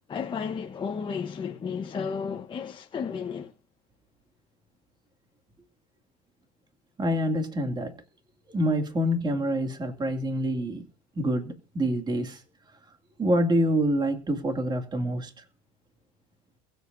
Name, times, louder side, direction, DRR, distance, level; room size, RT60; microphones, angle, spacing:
voice 1, 0.1-3.5, left 6 dB, 25° left, 1.1 m, -33 dB
voice 2, 7.0-7.9 8.5-10.8 11.2-12.4 13.2-15.4, equal, 20° right, 2.5 m, -26 dB
22.0 x 8.1 x 2.7 m
supercardioid pair, 120°, 19 cm